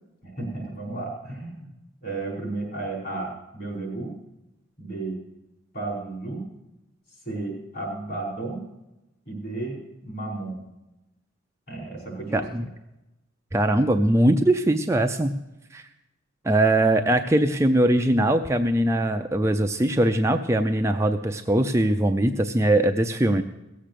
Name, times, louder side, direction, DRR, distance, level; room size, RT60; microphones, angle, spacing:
voice 1, 0.2-1.7 2.0-4.1 4.8-5.2 5.7-6.5 7.3-8.6 9.3-10.6 11.7-12.3, right 2 dB, 50° left, -2 dB, 5.2 m, -33 dB
voice 2, 12.3-12.6 13.5-15.4 15.7-15.8 16.4-23.4, right 1 dB, 15° right, 5 dB, 0.4 m, -21 dB
17.5 x 7.5 x 6.7 m, 0.97 s
head